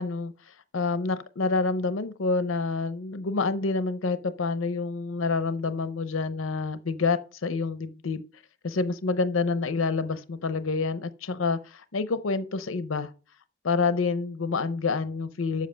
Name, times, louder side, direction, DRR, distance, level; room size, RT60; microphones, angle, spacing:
voice 1, 0.0-8.2 8.6-13.1 13.6-15.7, left 4 dB, 80° left, 0.7 m, -28 dB
7.9 x 7.5 x 5.6 m
head